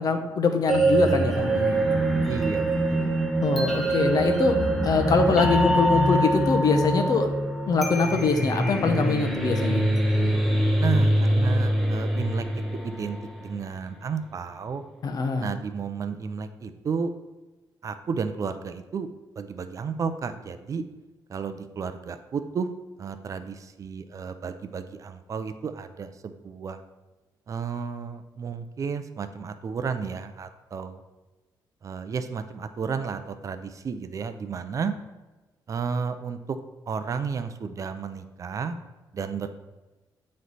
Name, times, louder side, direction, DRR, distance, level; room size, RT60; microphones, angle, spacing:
voice 1, 0.0-1.9 3.4-4.6 4.8-7.3 7.7-9.8 15.0-15.5, left 4 dB, 55° left, 6 dB, 0.8 m, -23 dB
sound 1, 0.7-13.7, right 1 dB, ahead, 0.8 m, -24 dB
voice 2, 2.3-3.2 10.8-14.8 15.4-17.1 17.8-19.1 19.4-20.8 21.3-22.7 23.0-26.8 27.5-31.0 31.8-34.9 35.7-36.6 36.9-38.7 39.1-39.5, right 6 dB, 45° right, 10 dB, 0.5 m, -32 dB
9.1 x 3.2 x 4.1 m, 1.1 s
cardioid pair, 105°, 8 cm